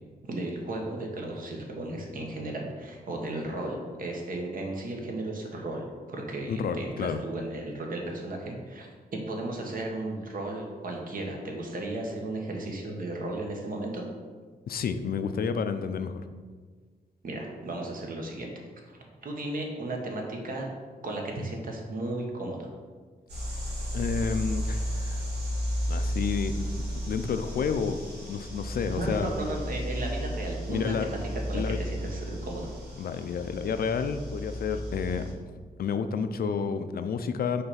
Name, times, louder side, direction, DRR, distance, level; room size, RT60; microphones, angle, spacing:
voice 1, 0.3-14.1 17.2-20.7 21.0-22.7 28.9-32.7, right 2 dB, 55° right, 0 dB, 1.1 m, -35 dB
voice 2, 6.5-7.2 14.7-16.2 23.9-25.2 25.9-26.7 27.1-29.3 30.7-31.1 31.5-31.8 33.0-35.5 35.8-37.6, left 6 dB, 65° left, 9 dB, 0.4 m, -30 dB
sound 1, 23.3-35.3, equal, 90° right, 1.9 m, -33 dB
5.6 x 3.3 x 5.6 m, 1.5 s
wide cardioid pair, 150°, 17 cm